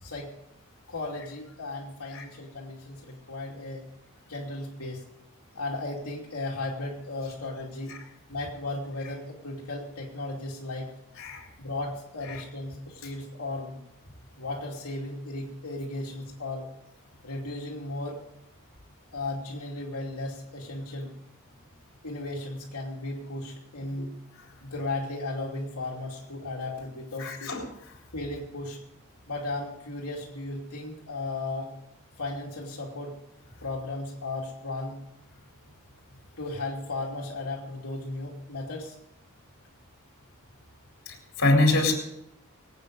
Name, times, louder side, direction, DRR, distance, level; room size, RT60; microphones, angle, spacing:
voice 1, 0.0-0.3 0.9-3.8 4.3-5.0 5.5-8.0 8.3-10.9 11.6-13.8 14.4-16.7 17.2-18.2 19.1-21.1 22.0-24.2 24.6-27.6 28.1-28.8 29.3-31.7 32.2-33.2 33.6-35.0 36.4-38.9, left 2 dB, 85° left, -3 dB, 2.8 m, -35 dB
voice 2, 27.2-27.6 41.4-41.9, left 2 dB, 60° left, 1 dB, 3.9 m, -23 dB
23.0 x 9.0 x 5.3 m, 0.81 s
head